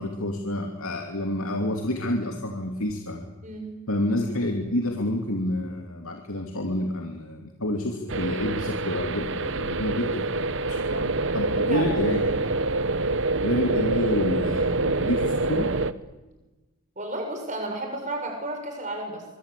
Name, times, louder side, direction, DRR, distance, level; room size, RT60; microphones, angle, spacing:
voice 1, 0.0-3.3 3.9-12.5 13.4-15.7, left 1 dB, 80° left, 3 dB, 2.7 m, -29 dB
voice 2, 3.4-3.8 11.7-11.9 12.7-13.0 17.0-19.2, right 1 dB, 35° right, 3 dB, 6.7 m, -33 dB
sound 1, 8.1-15.9, right 2 dB, 60° right, 1.0 m, -26 dB
25.0 x 24.0 x 8.5 m, 1.2 s
head